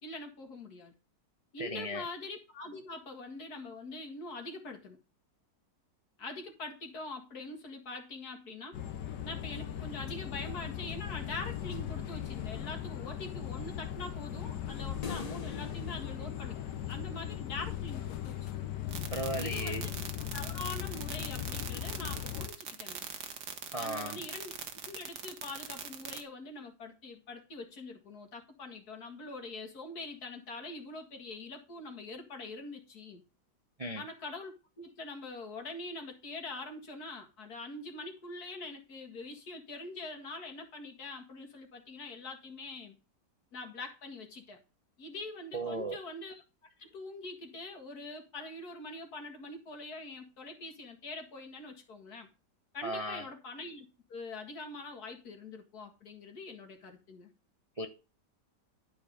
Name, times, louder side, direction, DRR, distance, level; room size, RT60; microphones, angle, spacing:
voice 1, 0.0-0.9 1.5-5.0 6.2-8.8 9.2-16.6 16.9-18.7 19.4-19.9 20.3-23.1 23.8-24.5 24.9-33.2 34.0-43.0 43.5-44.6 45.0-46.4 46.8-52.3 52.7-57.3, left 2 dB, 60° left, 2.4 m, -44 dB
voice 2, 1.6-2.0 19.1-19.8 23.7-24.2 33.8-34.0 45.5-46.0 52.8-53.2 57.8-57.9, right 1 dB, 30° right, 0.7 m, -36 dB
sound 1, 8.7-22.5, left 11 dB, 80° left, 1.6 m, -38 dB
sound 2, 15.0-17.4, left 4 dB, 45° left, 0.5 m, -44 dB
sound 3, 18.9-26.2, right 8 dB, 75° right, 1.8 m, -41 dB
12.0 x 4.7 x 5.1 m
omnidirectional pair, 1.8 m